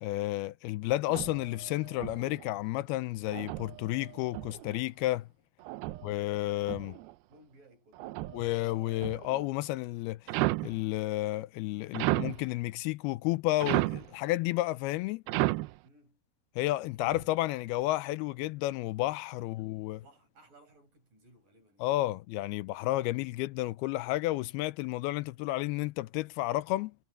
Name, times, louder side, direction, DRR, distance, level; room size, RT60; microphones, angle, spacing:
voice 1, 0.0-5.3 6.0-7.0 8.3-15.2 16.6-20.0 21.8-26.9, left 17 dB, 85° left, 2.6 m, -31 dB
sound 1, 1.1-2.5 3.3-4.8 5.6-7.1 7.9-9.5 10.3-10.8 11.9-12.5 13.6-14.1 15.3-15.8 17.0-17.3, right 19 dB, 85° right, 2.4 m, -34 dB
voice 2, 5.8-6.1 7.3-8.4 15.8-16.2 19.4-21.9, right 1 dB, 60° right, 8.2 m, -61 dB
omnidirectional pair, 4.5 m